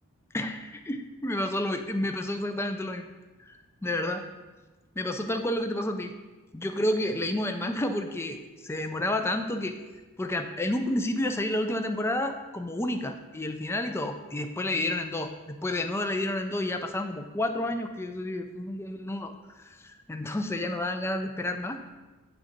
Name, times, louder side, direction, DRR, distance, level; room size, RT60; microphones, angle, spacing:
voice 1, 0.3-3.1 3.4-4.2 5.0-6.1 6.5-9.8 10.2-21.8, left 1 dB, 10° left, 6 dB, 0.4 m, -30 dB
9.0 x 3.7 x 5.1 m, 1.2 s
head